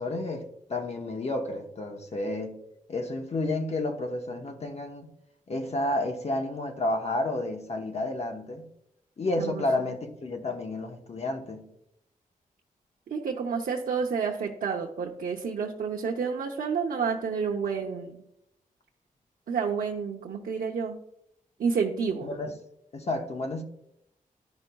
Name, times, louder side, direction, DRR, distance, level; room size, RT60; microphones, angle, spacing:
voice 1, 0.0-2.6 2.9-5.1 5.5-8.6 9.2-11.7 22.2-22.5 22.9-23.6, left 2 dB, 45° left, 1.0 m, -31 dB
voice 2, 9.4-9.9 13.1-18.2 19.5-21.0 21.6-22.3, right 6 dB, 90° right, 0.7 m, -30 dB
11.5 x 5.3 x 2.3 m
wide cardioid pair, 115°, 15 cm